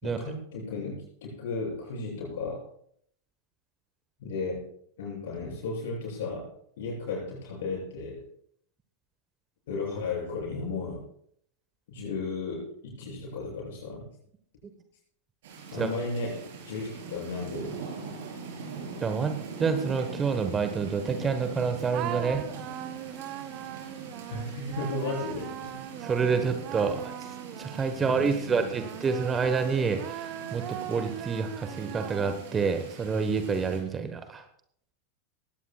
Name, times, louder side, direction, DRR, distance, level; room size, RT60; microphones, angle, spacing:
voice 1, 0.0-2.7 4.2-4.7 5.0-6.5 6.8-8.2 9.7-11.0 11.9-14.1 15.7-17.8 24.3-25.8 26.9-27.0 27.9-28.8, left 3 dB, 55° left, -3 dB, 7.5 m, -34 dB
sound 1, 15.4-33.8, right 4 dB, 55° right, 4.6 m, -42 dB
voice 2, 19.0-22.4 26.0-27.1 27.6-34.4, right 5 dB, 20° right, 8 dB, 1.2 m, -28 dB
sound 2, 21.9-28.1 28.7-32.6, right 12 dB, 35° right, 0.9 m, -40 dB
20.5 x 17.0 x 2.4 m, 0.66 s
figure-of-eight pair, 90°, 0 cm